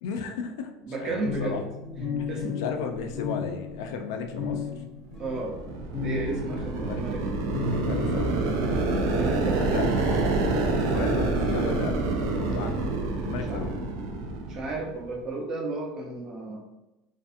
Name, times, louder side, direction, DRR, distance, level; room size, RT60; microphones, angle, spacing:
voice 1, 0.0-0.7 1.0-1.6 2.3-4.8 6.8-7.0 7.5-8.5 9.7-9.9 10.7-12.8 13.2-13.9, left 5 dB, 85° left, 5 dB, 0.3 m, -35 dB
voice 2, 0.8-1.6 2.3-2.6 5.2-5.5 6.0-7.2 9.1-9.7 13.5-13.6 14.5-16.6, right 2 dB, 25° right, 0 dB, 0.5 m, -32 dB
sound 1, 1.2-7.1 7.5-9.4, left 5 dB, 25° left, 0.6 m, -35 dB
sound 2, 5.2-15.0, right 3 dB, 85° right, 0.4 m, -27 dB
2.5 x 2.4 x 2.5 m, 0.97 s
cardioid pair, 160°, 2 cm